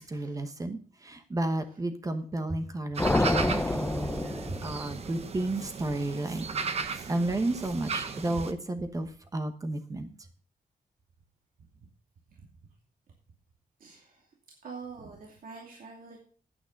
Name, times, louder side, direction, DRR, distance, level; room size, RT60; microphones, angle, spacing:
voice 1, 0.0-6.5 6.8-10.1, right 2 dB, 25° right, 8 dB, 1.1 m, -32 dB
sound 1, 2.9-8.5, right 5 dB, 45° right, 0.8 m, -36 dB
sound 2, 3.0-5.2, left 2 dB, 10° left, 0.6 m, -28 dB
voice 2, 4.2-5.0 12.4-12.5 13.8-14.2 14.6-16.2, right 5 dB, 80° right, -2 dB, 2.6 m, -47 dB
9.1 x 8.9 x 5.3 m, 0.42 s
wide cardioid pair, 170°, 14 cm